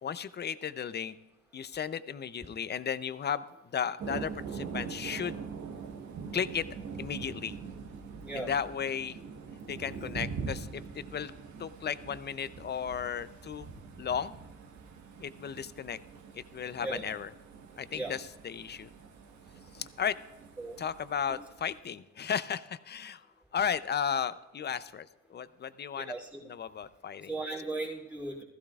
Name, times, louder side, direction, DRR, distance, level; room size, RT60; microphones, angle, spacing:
voice 1, 0.0-1.2 1.5-3.4 3.7-5.4 6.3-6.7 7.0-7.5 8.3-9.2 9.7-11.3 11.6-13.7 14.0-14.3 15.2-16.0 16.3-17.3 17.8-18.9 19.7-20.2 20.8-23.2 23.5-26.1 26.4-27.4, left 7 dB, 35° left, 14 dB, 0.6 m, -34 dB
Thunder, 4.0-21.8, right 5 dB, 70° right, 1.3 m, -43 dB
voice 2, 25.9-26.4 27.3-28.4, right 2 dB, 5° right, -5 dB, 3.1 m, -37 dB
16.0 x 14.0 x 2.4 m, 1.0 s
cardioid pair, 90°, 30 cm